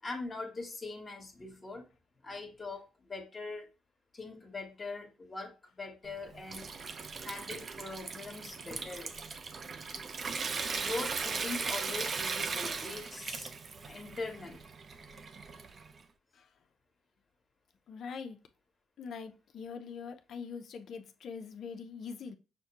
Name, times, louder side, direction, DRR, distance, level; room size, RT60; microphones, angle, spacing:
voice 1, 0.0-1.9 2.2-3.7 4.1-6.7 7.2-9.1 10.7-13.5 13.9-14.6, left 3 dB, 30° left, 1.4 m, -42 dB
Water tap faucet / Sink (filling or washing) / Trickle dribble, 6.0-16.0, right 4 dB, 45° right, 0.5 m, -38 dB
voice 2, 17.9-18.4 19.0-22.3, left 5 dB, 65° left, 0.6 m, -43 dB
6.0 x 2.2 x 2.8 m
cardioid pair, 90°, 0 cm